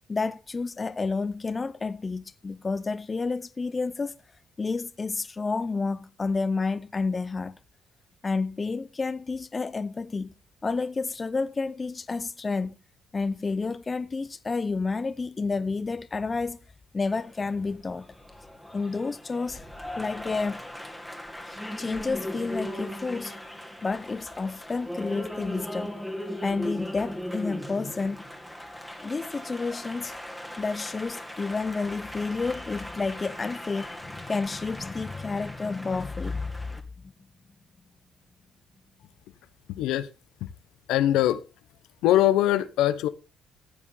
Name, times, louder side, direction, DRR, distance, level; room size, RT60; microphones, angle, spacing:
voice 1, 0.1-4.2 4.6-7.6 8.2-10.4 10.6-12.8 13.1-16.6 16.9-18.1 18.7-19.7 20.0-20.6 21.4-23.4 23.8-25.9 26.4-28.2 29.0-30.2 30.6-36.5, left 4 dB, 30° left, 0.6 m, -30 dB
Applause, 17.0-36.8, equal, ahead, 2.1 m, -38 dB
voice 2, 39.8-40.1 40.4-40.5 40.9-41.4 42.0-43.1, left 13 dB, 85° left, 0.9 m, -22 dB
15.0 x 7.4 x 3.8 m
supercardioid pair, 75°, 0 cm